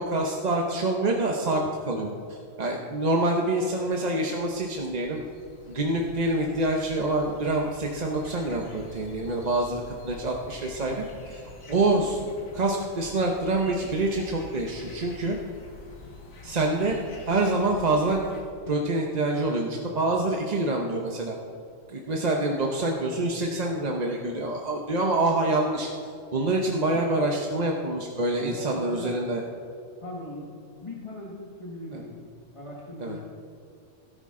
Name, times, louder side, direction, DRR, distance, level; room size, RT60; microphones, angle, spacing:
voice 1, 0.0-5.2 5.7-11.4 11.7-12.3 12.5-15.4 16.4-17.0 17.3-18.2 18.7-21.3 21.9-29.4 31.9-32.0 33.0-33.2, right 2 dB, 35° right, 1 dB, 0.8 m, -26 dB
sound 1, 4.3-18.4, left 2 dB, 85° left, 1.9 m, -46 dB
voice 2, 28.4-29.2 30.0-30.5 30.8-33.2, left 1 dB, 25° left, -3 dB, 1.5 m, -39 dB
17.0 x 10.0 x 3.7 m, 2.6 s
omnidirectional pair, 1.4 m